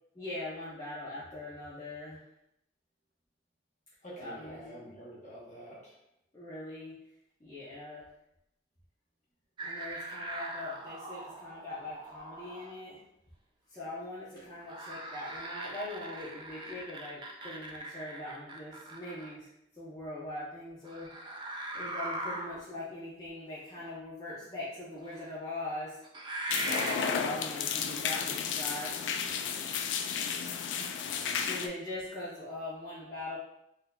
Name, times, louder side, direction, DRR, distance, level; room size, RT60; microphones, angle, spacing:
voice 1, 0.2-2.2 4.2-4.8 6.3-7.0 7.4-8.1 9.6-13.0 13.7-21.1 21.7-26.0 27.0-29.1 31.5-33.4, left 2 dB, 20° left, -9 dB, 0.7 m, -41 dB
voice 2, 4.0-6.0 30.7-31.4, right 1 dB, 45° left, -6 dB, 1.0 m, -48 dB
sound 1, 9.6-12.8 14.6-19.3 20.8-22.6 23.8-23.9 25.1-25.3 26.0-27.1, right 2 dB, 25° right, 0.3 m, -40 dB
sound 2, 26.5-31.7, left 7 dB, 90° left, 0.3 m, -33 dB
3.9 x 2.7 x 2.3 m, 0.82 s
head